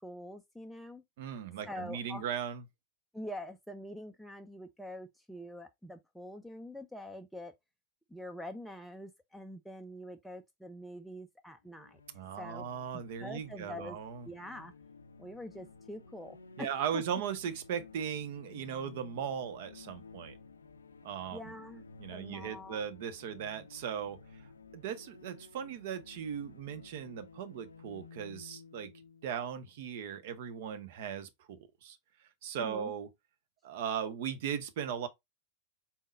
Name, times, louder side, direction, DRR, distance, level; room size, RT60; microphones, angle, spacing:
voice 1, 0.0-1.0 1.7-2.2 3.1-7.5 8.1-12.0 12.4-12.7 12.9-14.0 14.2-14.7 15.2-17.0 21.3-22.8 32.6-32.9, left 1 dB, ahead, 0.4 m, -45 dB
voice 2, 1.2-2.6 12.1-14.3 16.6-20.4 21.0-21.4 22.0-24.2 24.7-28.9 29.2-32.0 32.4-33.1 33.6-35.1, right 8 dB, 50° right, 0.7 m, -38 dB
sound 1, 11.7-30.4, left 4 dB, 75° left, 0.4 m, -54 dB
4.2 x 3.6 x 2.4 m
figure-of-eight pair, 90°, 0 cm